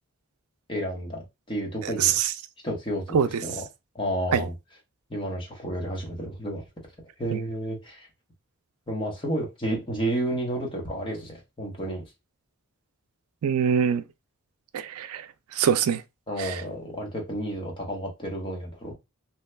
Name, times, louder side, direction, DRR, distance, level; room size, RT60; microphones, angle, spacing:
voice 1, 0.7-2.1 2.6-3.2 3.4-3.6 3.9-4.5 5.1-6.6 7.2-8.1 8.9-12.0 16.3-18.9, right 1 dB, 20° left, 0.9 m, -31 dB
voice 2, 2.0-2.3 3.1-3.3 4.3-4.4 7.3-7.4 13.4-14.0 14.7-15.3 15.5-16.0 16.4-16.6, right 7 dB, 80° right, 0.4 m, -23 dB
2.8 x 2.3 x 3.2 m
head